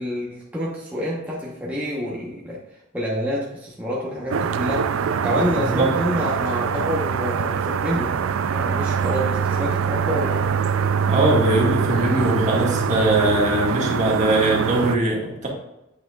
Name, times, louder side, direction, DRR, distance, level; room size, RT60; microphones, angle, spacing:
voice 1, 0.0-2.6 2.9-8.2 8.5-10.5, equal, 10° right, -5 dB, 1.0 m, -27 dB
sound 1, 4.3-15.0, right 6 dB, 80° right, 0.4 m, -23 dB
voice 2, 5.6-5.9 11.1-15.5, right 1 dB, 35° right, -2 dB, 1.7 m, -21 dB
8.5 x 5.7 x 2.4 m, 0.90 s
head